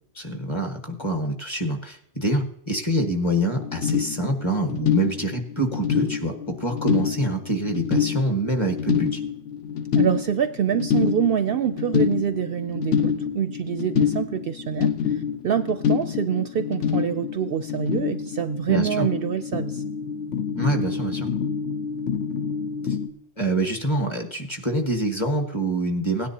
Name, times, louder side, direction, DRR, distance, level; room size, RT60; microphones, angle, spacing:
voice 1, 0.1-9.2 18.7-19.1 20.6-21.3 22.9-23.0 23.4-26.3, right 1 dB, 25° left, 3 dB, 1.4 m, -26 dB
sound 1, 3.5-23.1, left 7 dB, 75° left, 1.3 m, -27 dB
voice 2, 9.9-19.8, right 9 dB, 65° right, 10 dB, 0.7 m, -26 dB
17.0 x 10.0 x 2.8 m, 0.72 s
omnidirectional pair, 1.2 m